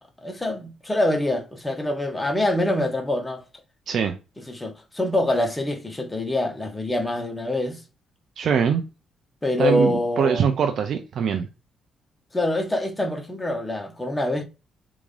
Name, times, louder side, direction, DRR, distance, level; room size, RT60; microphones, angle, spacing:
voice 1, 0.2-3.4 4.5-7.8 9.4-10.5 12.3-14.4, left 1 dB, 15° left, 0.8 m, -25 dB
voice 2, 3.9-4.2 8.4-8.8 9.6-11.5, right 7 dB, 65° right, 0.4 m, -22 dB
3.5 x 2.5 x 3.2 m
cardioid pair, 90°, 0 cm